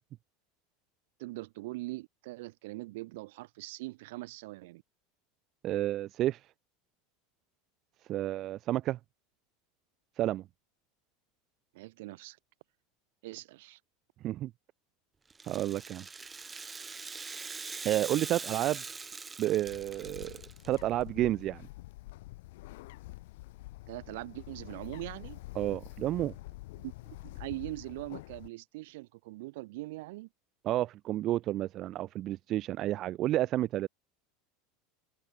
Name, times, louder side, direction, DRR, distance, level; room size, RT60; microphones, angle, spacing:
voice 1, 1.2-4.8 11.7-12.4 13.2-13.8 23.9-25.4 26.8-30.3, right 20 dB, 75° right, 1.7 m, -42 dB
voice 2, 5.6-6.4 8.1-9.0 10.2-10.4 14.2-14.5 15.5-16.0 17.8-18.8 19.4-21.7 25.6-26.3 30.6-33.9, right 14 dB, 45° right, 0.6 m, -31 dB
Rattle (instrument), 15.3-20.8, right 4 dB, 15° right, 0.9 m, -42 dB
Bird, 19.7-28.5, left 19 dB, 75° left, 1.2 m, -47 dB
supercardioid pair, 125°, 0 cm